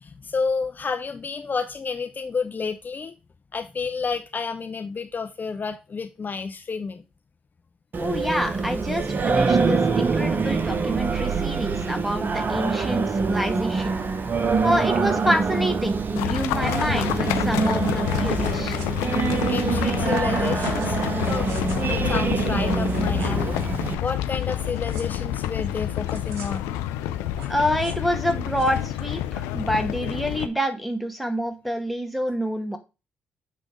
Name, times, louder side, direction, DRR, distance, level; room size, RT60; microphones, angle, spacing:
voice 1, 0.0-3.1 3.5-7.0 19.5-21.0 21.3-21.5 21.9-23.6 24.0-26.8, left 5 dB, 40° left, 0.7 m, -30 dB
Singing, 7.9-23.9, right 4 dB, 45° right, 0.9 m, -25 dB
voice 2, 8.0-14.0 14.6-18.8 27.5-32.8, equal, ahead, 1.8 m, -27 dB
sound 1, 16.2-30.5, left 12 dB, 85° left, 0.5 m, -28 dB
sound 2, 16.9-17.0 17.3-17.7 18.0-18.9 19.3-19.6 20.6-20.9 21.2-21.9 22.5-22.6 22.8-23.7 24.4-24.6 24.8-25.0 26.1-26.7 27.2-28.1 28.6-28.9, right 5 dB, 75° right, 1.2 m, -44 dB
7.6 x 3.4 x 5.2 m
hypercardioid pair, 45°, 4 cm